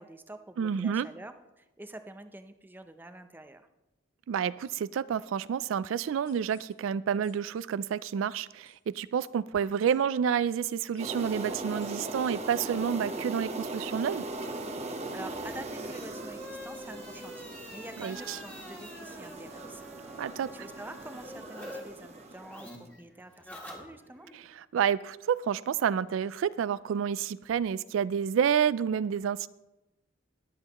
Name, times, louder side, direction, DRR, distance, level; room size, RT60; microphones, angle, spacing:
voice 1, 0.0-3.7 14.8-22.7 23.0-24.3, right 1 dB, 10° right, 8 dB, 0.6 m, -47 dB
voice 2, 0.6-1.1 4.3-14.2 18.0-18.4 20.2-20.5 24.3-29.5, right 8 dB, 85° right, 17 dB, 0.3 m, -29 dB
sound 1, 6.2-6.7 7.2-7.3 7.6-8.0 8.6-8.8 9.2-9.3 9.9-10.0 10.5-10.6 10.9-11.1 11.4-11.5 11.8-11.9 12.2-12.3 12.8-12.9, left 6 dB, 50° left, 2.5 m, -60 dB
sound 2, 11.0-22.8, right 2 dB, 35° right, 1.0 m, -39 dB
sound 3, 15.2-21.8 22.1-24.3, equal, 10° left, 1.8 m, -47 dB
21.0 x 7.9 x 3.0 m, 0.99 s
head